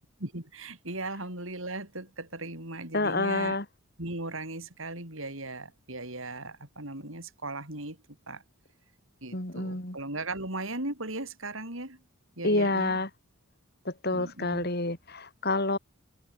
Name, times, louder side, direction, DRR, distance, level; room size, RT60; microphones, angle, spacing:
voice 1, 0.2-3.6 4.0-8.4 9.2-12.0 12.4-13.0 14.1-14.7, right 2 dB, 65° right, 5.9 m, -38 dB
voice 2, 2.9-3.7 9.3-10.0 12.4-13.1 13.9-15.8, left 2 dB, 45° left, 3.6 m, -28 dB
head